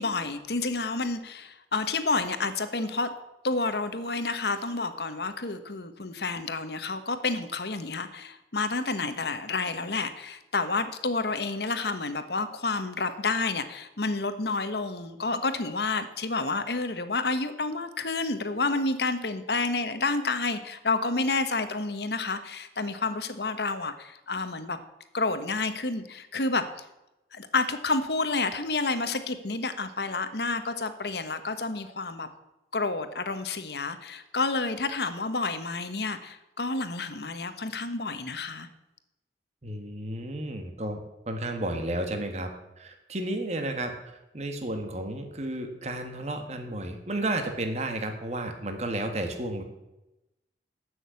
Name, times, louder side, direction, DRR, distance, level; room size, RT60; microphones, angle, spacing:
voice 1, 0.0-3.1 3.4-24.8 25.1-26.6 27.3-32.3 32.7-38.7, left 3 dB, 65° left, 10 dB, 1.1 m, -29 dB
voice 2, 39.6-41.0 41.3-42.5 42.8-43.9 44.3-49.6, right 1 dB, 40° right, 5 dB, 1.5 m, -32 dB
14.0 x 6.4 x 8.3 m, 0.96 s
head